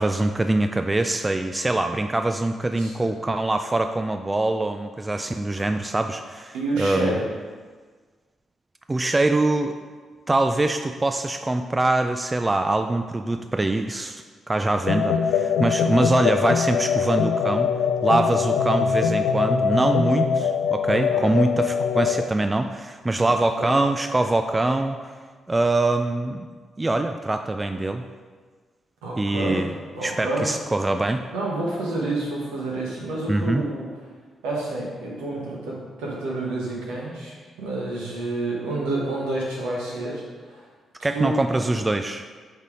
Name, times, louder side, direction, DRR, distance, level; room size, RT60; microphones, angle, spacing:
voice 1, 0.0-7.2 8.9-9.8 10.3-17.7 18.0-25.0 25.5-26.5 26.8-28.0 29.2-29.7 30.0-31.2 33.3-33.6 41.0-42.2, right 2 dB, 25° right, 7 dB, 0.3 m, -23 dB
voice 2, 6.5-7.2 15.0-15.6 21.1-21.3 23.6-23.8 29.0-29.7 29.9-30.5 31.3-33.9 34.4-40.2 40.5-40.6 41.0-41.6, right 2 dB, 75° right, -3 dB, 1.3 m, -29 dB
sound 1, 14.9-22.2, left 6 dB, 70° left, 0.3 m, -23 dB
5.3 x 4.0 x 4.9 m, 1.5 s
hypercardioid pair, 40°, 0 cm